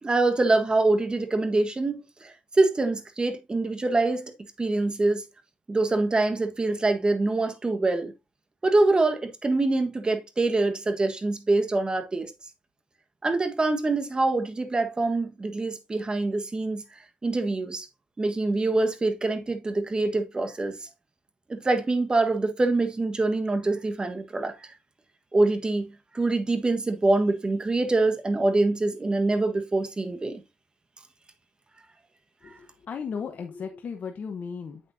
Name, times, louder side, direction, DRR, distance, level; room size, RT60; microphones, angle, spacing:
voice 1, 0.0-4.3 4.6-5.3 5.7-8.1 8.6-12.3 13.2-16.8 17.2-17.9 18.2-20.8 21.5-24.5 25.3-25.9 26.1-30.4, right 2 dB, 25° right, 1.4 m, -25 dB
voice 2, 32.9-34.8, left 6 dB, 55° left, 1.0 m, -35 dB
8.0 x 6.3 x 2.7 m
cardioid pair, 70°, 3 cm